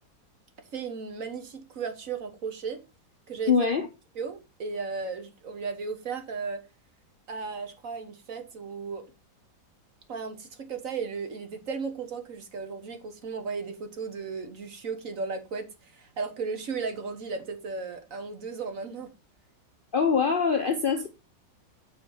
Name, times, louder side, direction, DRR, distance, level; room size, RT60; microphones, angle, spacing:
voice 1, 0.7-2.8 3.3-3.5 4.1-6.6 7.3-9.1 10.1-19.1, right 5 dB, 50° right, 1.4 m, -35 dB
voice 2, 3.5-3.9 19.9-21.1, left 5 dB, 65° left, 0.5 m, -23 dB
7.0 x 4.2 x 5.4 m
omnidirectional pair, 2.0 m